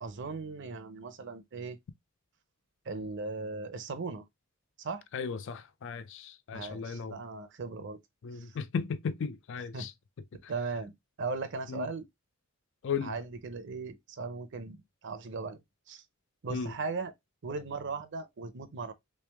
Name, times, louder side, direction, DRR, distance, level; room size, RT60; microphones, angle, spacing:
voice 1, 0.0-1.8 2.9-4.2 4.8-5.0 6.5-8.0 9.7-9.9 10.5-10.9 11.2-12.1 13.0-14.8 15.0-15.6 15.9-16.0 16.4-17.1 17.4-18.9, right 4 dB, 60° right, 0.6 m, -37 dB
voice 2, 5.1-7.1 8.2-9.9 11.7-11.9 12.8-13.1 16.5-16.7, left 6 dB, 60° left, 0.4 m, -35 dB
3.4 x 3.3 x 3.3 m
head